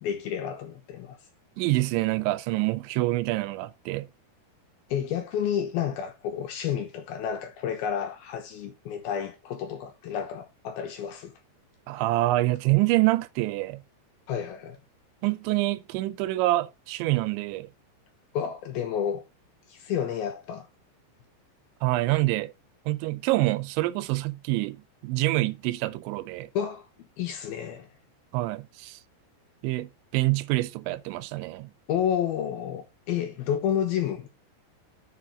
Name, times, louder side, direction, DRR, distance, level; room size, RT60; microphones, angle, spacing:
voice 1, 0.0-1.2 4.9-11.3 14.3-14.8 18.3-19.2 19.7-20.7 26.5-26.9 27.2-27.9 31.9-34.3, left 9 dB, 70° left, 2.5 m, -30 dB
voice 2, 1.6-4.1 11.9-13.8 15.2-17.7 21.8-22.5 22.9-26.5 28.3-29.0 29.6-31.7, right 18 dB, 85° right, 2.9 m, -26 dB
7.6 x 7.0 x 4.3 m
omnidirectional pair, 5.2 m